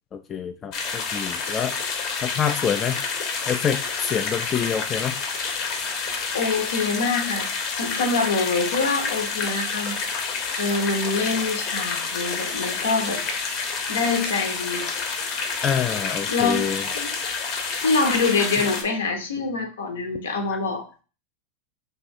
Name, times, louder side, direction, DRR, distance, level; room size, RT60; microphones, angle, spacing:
voice 1, 0.1-3.0 3.5-5.2 15.6-16.9 20.5-20.6, left 8 dB, 30° left, 6 dB, 0.3 m, -27 dB
sound 1, 0.7-18.8, left 5 dB, 50° left, 0.8 m, -29 dB
voice 2, 6.3-7.5 7.7-10.0 10.6-13.2 13.6-14.9 16.3-16.6 16.9-17.1 17.8-20.8, left 4 dB, 80° left, 4 dB, 0.8 m, -25 dB
2.7 x 2.3 x 4.2 m, 0.36 s
hypercardioid pair, 90°, 0 cm